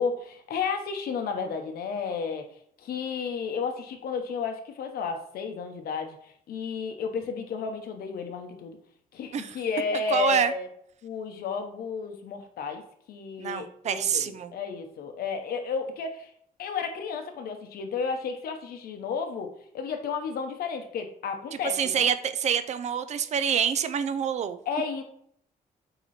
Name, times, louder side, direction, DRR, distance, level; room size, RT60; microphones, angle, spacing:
voice 1, 0.0-2.5 2.8-8.8 9.1-10.7 11.0-12.8 13.1-16.3 16.6-19.5 19.7-22.1 24.7-25.0, left 5 dB, 85° left, 6 dB, 1.0 m, -32 dB
voice 2, 10.1-10.5 13.4-14.5 21.8-24.6, right 8 dB, 50° right, 12 dB, 0.5 m, -26 dB
8.0 x 2.9 x 4.3 m, 0.66 s
cardioid pair, 160°, 15 cm